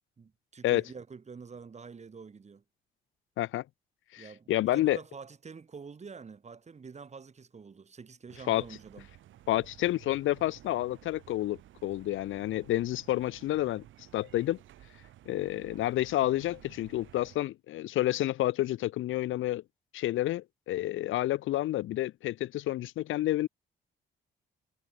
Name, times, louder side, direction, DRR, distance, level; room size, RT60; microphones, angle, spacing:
voice 1, 0.2-2.6 4.2-9.1, right 5 dB, 35° right, 2.7 m, -47 dB
voice 2, 4.1-5.0 8.5-8.6 9.5-13.8 14.1-14.6 15.3-19.6 19.9-23.5, left 15 dB, 80° left, 1.1 m, -29 dB
sound 1, 8.3-17.4, right 13 dB, 80° right, 2.8 m, -55 dB
cardioid pair, 90°, 20 cm